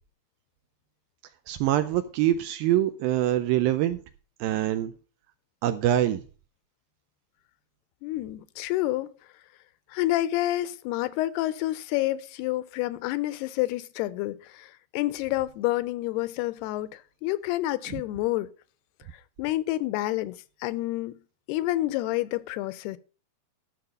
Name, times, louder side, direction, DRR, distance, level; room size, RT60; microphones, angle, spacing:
voice 1, 1.5-4.0 4.4-4.9 5.6-6.2, right 12 dB, 80° right, 2.2 m, -24 dB
voice 2, 8.0-9.1 9.9-18.5 19.4-21.2 21.5-23.0, left 16 dB, 85° left, 2.6 m, -29 dB
12.0 x 6.8 x 5.2 m
omnidirectional pair, 4.7 m